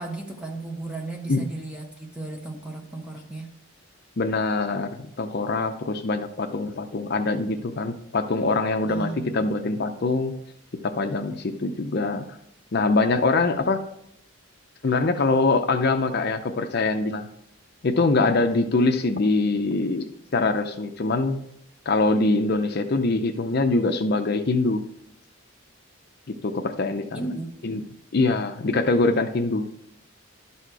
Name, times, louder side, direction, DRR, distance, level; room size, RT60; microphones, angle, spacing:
voice 1, 0.0-3.5 8.9-9.4 27.1-27.5, right 2 dB, 5° right, 1 dB, 1.0 m, -35 dB
voice 2, 4.2-10.3 10.8-12.3 12.7-13.8 14.8-17.3 17.8-21.4 21.9-24.8 26.4-27.3 27.6-27.8 28.1-29.7, left 3 dB, 50° left, 6 dB, 0.5 m, -23 dB
11.5 x 4.2 x 4.7 m, 0.73 s
head